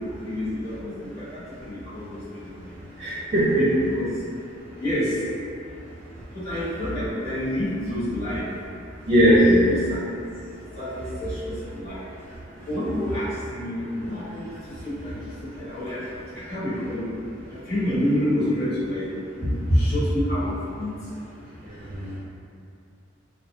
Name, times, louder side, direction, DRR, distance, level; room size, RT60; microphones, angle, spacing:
voice 1, 0.0-2.5 3.5-4.1 4.8-5.2 6.3-8.4 9.2-10.0 10.8-12.0 12.7-14.5 14.8-15.2 15.5-16.0 16.4-17.0 17.5-19.1 19.4-20.9, equal, 55° left, -14 dB, 1.3 m, -27 dB
voice 2, 3.0-3.6 9.0-9.4 12.6-12.7 21.6-22.2, equal, 40° right, -9 dB, 0.4 m, -20 dB
2.4 x 2.1 x 2.7 m, 2.5 s
head